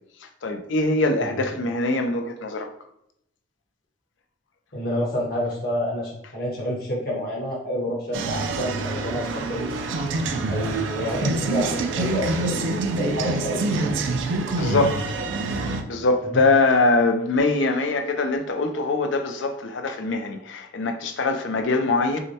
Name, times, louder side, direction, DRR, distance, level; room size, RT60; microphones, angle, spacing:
voice 1, 0.2-2.7 14.6-15.0 15.9-22.2, left 3 dB, 75° left, 0.5 m, -23 dB
voice 2, 4.7-9.7 10.5-13.9, equal, 50° left, 1.1 m, -28 dB
sound 1, 8.1-15.8, right 3 dB, 80° right, 0.5 m, -26 dB
6.2 x 2.2 x 2.8 m
head